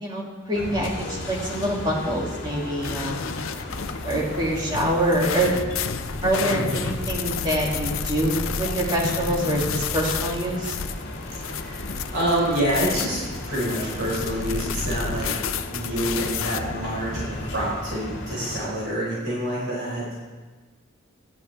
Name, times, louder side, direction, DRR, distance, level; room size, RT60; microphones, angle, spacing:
voice 1, 0.0-3.3 4.0-5.5 6.2-10.8, right 1 dB, 20° right, -3 dB, 2.7 m, -25 dB
sound 1, 0.5-18.7, left 1 dB, 60° left, 2.6 m, -35 dB
sound 2, 2.8-16.6, left 6 dB, 85° left, 0.7 m, -31 dB
voice 2, 11.4-15.5 15.7-20.2, right 1 dB, 60° right, -6 dB, 5.0 m, -27 dB
17.5 x 13.5 x 3.5 m, 1.4 s
head